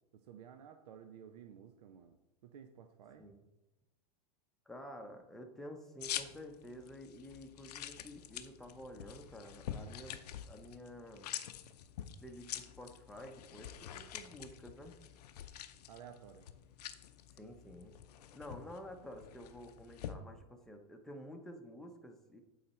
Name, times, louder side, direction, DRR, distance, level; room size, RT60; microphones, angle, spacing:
voice 1, 0.1-2.2 2.4-3.3 15.9-16.5, right 8 dB, 85° right, 6 dB, 0.6 m, -54 dB
voice 2, 4.7-11.3 12.2-14.9 17.4-17.9 18.3-22.4, equal, ahead, 3 dB, 0.8 m, -50 dB
sound 1, 6.0-20.1, left 10 dB, 90° left, 0.6 m, -47 dB
8.6 x 4.0 x 4.3 m, 0.99 s
supercardioid pair, 135°, 20 cm